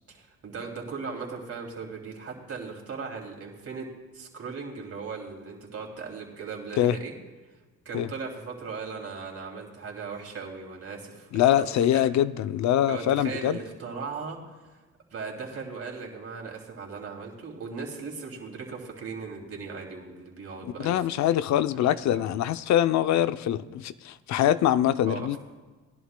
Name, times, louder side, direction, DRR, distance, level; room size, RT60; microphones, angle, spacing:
voice 1, 0.1-3.9 4.1-7.1 7.8-12.0 12.9-14.4 15.1-21.0 21.9-22.2 25.0-25.4, right 5 dB, 50° right, 0 dB, 2.8 m, -38 dB
voice 2, 11.3-13.6 20.6-25.4, left 11 dB, 65° left, 14 dB, 0.6 m, -24 dB
20.0 x 11.0 x 2.2 m, 1.3 s
cardioid pair, 90°, 30 cm